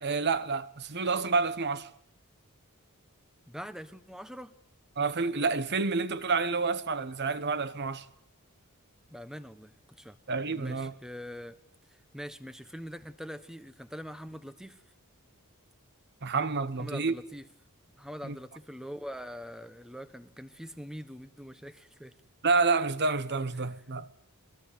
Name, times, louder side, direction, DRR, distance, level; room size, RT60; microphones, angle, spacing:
voice 1, 0.0-1.9 5.0-8.1 10.3-10.9 16.2-17.1 18.2-18.4 22.4-24.1, right 4 dB, 50° right, 1.2 m, -29 dB
voice 2, 3.5-4.5 9.1-10.2 10.5-11.6 11.9-14.8 16.8-17.4 17.9-22.1 23.6-23.7, equal, 5° right, 1.2 m, -43 dB
23.5 x 21.0 x 9.3 m
head